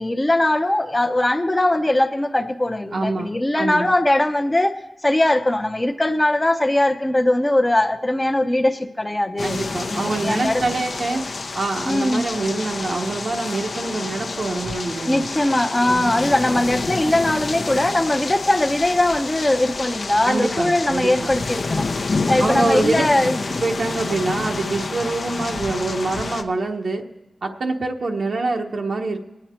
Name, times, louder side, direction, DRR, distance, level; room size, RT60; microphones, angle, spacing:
voice 1, 0.0-9.6 9.9-10.6 11.9-12.3 15.0-21.9 22.3-23.4, left 1 dB, 20° left, 0.7 m, -20 dB
voice 2, 2.9-3.9 9.4-11.2 11.5-15.3 15.9-16.2 20.2-21.3 22.4-23.0 23.6-27.0 27.4-29.2, right 3 dB, 75° right, 1.0 m, -25 dB
sound 1, 9.4-26.4, left 3 dB, 70° left, 0.7 m, -28 dB
24.0 x 8.9 x 4.4 m
wide cardioid pair, 95°, 0 cm